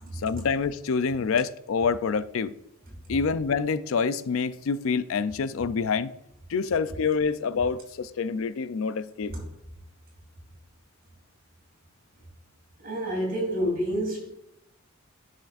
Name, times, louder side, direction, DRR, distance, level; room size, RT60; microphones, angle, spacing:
voice 1, 0.1-2.5 3.1-6.1 6.5-9.3, left 5 dB, 70° left, 0.4 m, -27 dB
voice 2, 12.8-14.3, equal, 45° right, 3.0 m, -28 dB
10.0 x 6.4 x 2.5 m
head